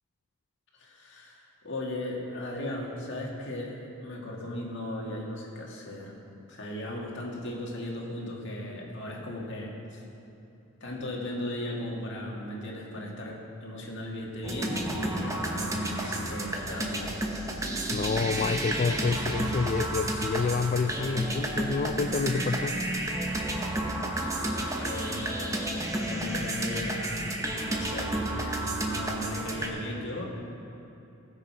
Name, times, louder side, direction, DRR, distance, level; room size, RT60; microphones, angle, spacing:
voice 1, 0.7-6.1 6.5-10.0 10.8-17.1 23.8-30.2, left 1 dB, 55° left, -2 dB, 2.0 m, -37 dB
sound 1, 14.4-29.7, right 1 dB, 15° right, 0.9 m, -31 dB
voice 2, 17.7-22.8, left 4 dB, 35° left, 7 dB, 0.3 m, -28 dB
19.0 x 6.8 x 4.8 m, 2.9 s
head